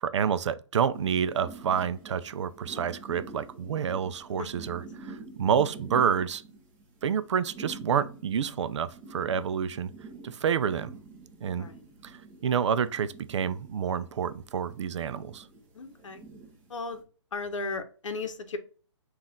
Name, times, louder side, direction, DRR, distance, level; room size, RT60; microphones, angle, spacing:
voice 1, 0.0-6.4 7.0-9.9 10.2-11.0 11.4-11.7 12.0-15.5, right 7 dB, 65° right, 0.4 m, -28 dB
sound 1, 0.9-17.0, right 3 dB, 20° right, 0.9 m, -47 dB
voice 2, 15.7-16.2 16.7-17.0 17.3-18.6, left 3 dB, 80° left, 0.8 m, -35 dB
4.0 x 2.4 x 3.7 m
hypercardioid pair, 155°, 16 cm